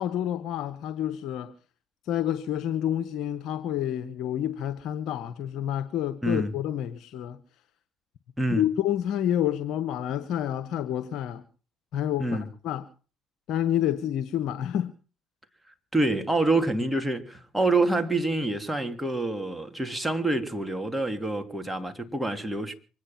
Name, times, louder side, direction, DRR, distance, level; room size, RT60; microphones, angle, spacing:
voice 1, 0.0-1.5 2.0-7.4 8.5-11.4 11.9-12.8 13.5-14.9, left 11 dB, 65° left, 1.0 m, -29 dB
voice 2, 6.2-6.5 8.4-8.7 12.2-12.4 15.9-22.7, right 2 dB, 5° right, 3.1 m, -26 dB
25.0 x 9.9 x 5.8 m
hypercardioid pair, 60°, 0 cm